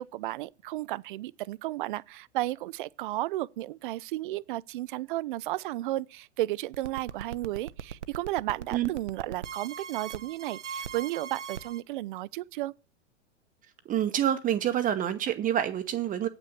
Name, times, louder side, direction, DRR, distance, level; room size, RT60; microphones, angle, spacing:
voice 1, 0.0-12.7, right 17 dB, 45° right, 0.4 m, -33 dB
sound 1, 6.7-11.8, right 8 dB, 80° right, 0.7 m, -39 dB
voice 2, 13.9-16.3, right 10 dB, 25° right, 0.8 m, -27 dB
8.6 x 5.9 x 7.7 m
figure-of-eight pair, 95°, 36 cm